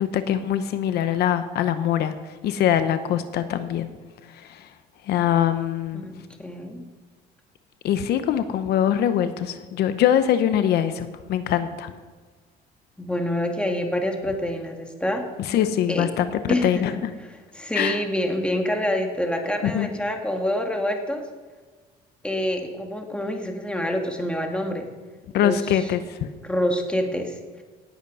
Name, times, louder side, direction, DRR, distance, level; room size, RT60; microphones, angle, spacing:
voice 1, 0.0-2.1 2.4-3.9 4.3-4.7 5.1-6.0 7.8-11.9 15.5-17.1 17.7-18.0 19.6-19.9 25.3-26.2, left 10 dB, 75° left, 10 dB, 0.8 m, -23 dB
voice 2, 5.9-6.8 13.0-15.3 15.9-16.1 16.5-16.8 17.2-21.3 22.2-24.9 25.4-25.9 26.4-27.6, left 1 dB, 5° left, 3 dB, 2.1 m, -27 dB
18.0 x 8.2 x 5.5 m, 1.4 s
cardioid pair, 110°, 17 cm